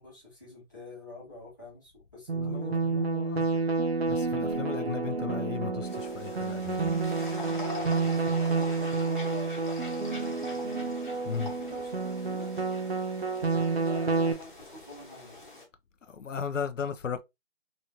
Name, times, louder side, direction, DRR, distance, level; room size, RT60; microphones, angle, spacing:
voice 1, 0.0-3.1 7.6-10.9 11.3-12.5 13.8-15.4, left 3 dB, 15° left, 1.1 m, -45 dB
sound 1, 2.3-14.3, right 4 dB, 60° right, 0.8 m, -29 dB
voice 2, 2.4-3.5 4.1-6.9 11.3-11.5 16.1-17.2, left 6 dB, 85° left, 0.6 m, -36 dB
sound 2, 5.8-15.7, left 2 dB, 40° left, 1.1 m, -45 dB
3.2 x 2.8 x 2.7 m
figure-of-eight pair, 175°, 37 cm